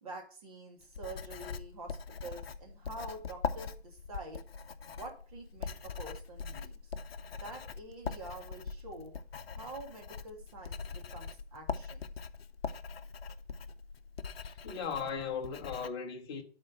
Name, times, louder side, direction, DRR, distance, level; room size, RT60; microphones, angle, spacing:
voice 1, 0.0-4.4 4.9-6.9 7.4-9.1 9.5-12.1, right 2 dB, 35° right, 2.4 m, -47 dB
Writing, 0.8-15.9, left 5 dB, 70° left, 0.7 m, -42 dB
voice 2, 14.4-16.4, left 6 dB, 25° left, 1.0 m, -37 dB
11.0 x 4.4 x 4.1 m
hypercardioid pair, 155°, 32 cm